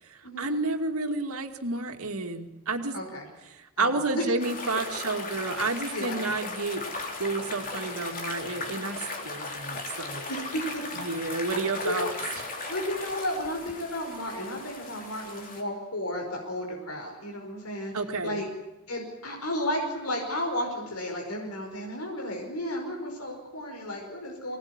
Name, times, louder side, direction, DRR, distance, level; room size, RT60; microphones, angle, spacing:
voice 1, 0.1-3.0 3.5-6.8 7.2-10.3 11.0-12.1 17.9-18.4, right 3 dB, 70° right, 5 dB, 2.5 m, -30 dB
voice 2, 2.9-3.3 3.8-4.3 5.9-6.2 10.3-10.8 11.4-11.5 11.8-11.9 12.7-17.9 18.2-18.5 18.9-24.6, left 1 dB, 70° left, 1 dB, 5.3 m, -33 dB
sound 1, 4.4-15.6, left 3 dB, 40° left, 3.7 m, -37 dB
24.0 x 18.5 x 9.7 m, 1.0 s
head